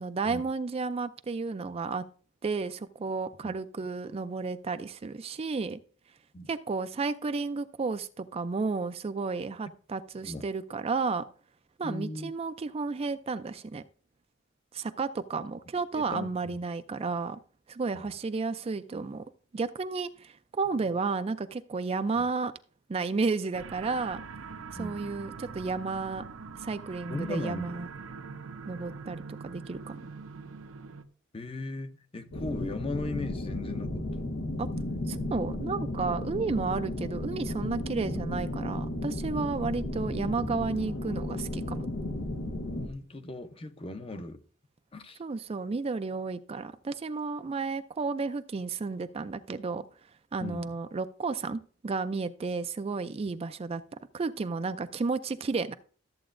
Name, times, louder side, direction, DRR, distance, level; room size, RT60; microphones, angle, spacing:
voice 1, 0.0-2.0 2.4-5.8 6.5-11.2 11.8-13.8 14.7-17.4 17.7-19.2 19.5-22.5 22.9-24.2 24.7-26.2 26.6-27.9 28.7-30.0 34.6-34.7 35.1-41.8 45.2-49.9 50.3-53.8 54.1-55.7, right 4 dB, 30° right, 0.4 m, -32 dB
voice 2, 11.8-12.3 15.9-16.6 17.9-18.1 20.8-21.0 22.2-22.3 24.8-25.1 27.1-27.8 31.3-34.3 42.7-44.4 44.9-45.2 50.4-50.7, left 2 dB, 30° left, 0.7 m, -38 dB
sound 1, 23.5-31.0, right 5 dB, 80° right, 0.7 m, -43 dB
sound 2, 32.3-42.9, left 1 dB, 80° left, 1.0 m, -34 dB
13.5 x 7.8 x 2.5 m
head